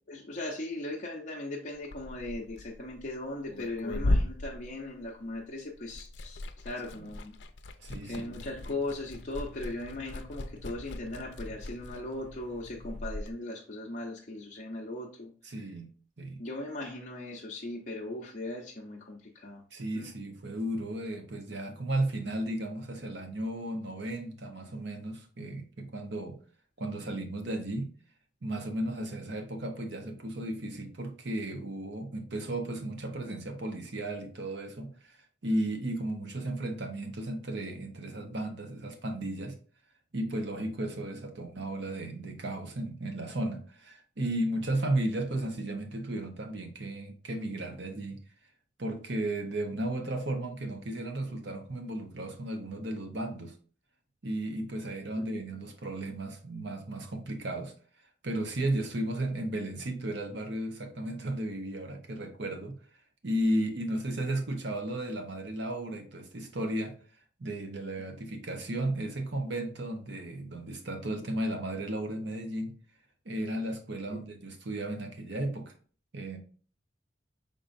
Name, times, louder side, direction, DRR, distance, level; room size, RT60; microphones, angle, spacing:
voice 1, 0.1-7.3 8.1-15.3 16.4-19.6 19.9-20.1 55.2-55.4 63.4-63.5 68.0-68.1 74.1-74.2, left 2 dB, 45° left, 0.6 m, -38 dB
Liquid, 1.8-5.5 5.7-13.3, left 1 dB, 85° left, 0.5 m, -36 dB
sound 1, 7.8-13.0, left 2 dB, 45° right, 1.8 m, -51 dB
voice 2, 7.8-8.3 15.4-15.9 16.2-16.4 19.7-26.4 26.8-27.9 28.4-35.2 35.4-39.6 40.1-48.2 48.8-53.5 54.2-57.7 58.2-62.8 63.2-66.9 67.4-72.7 73.2-75.7 76.1-76.4, right 1 dB, 75° right, 0.9 m, -34 dB
5.2 x 3.9 x 2.6 m
head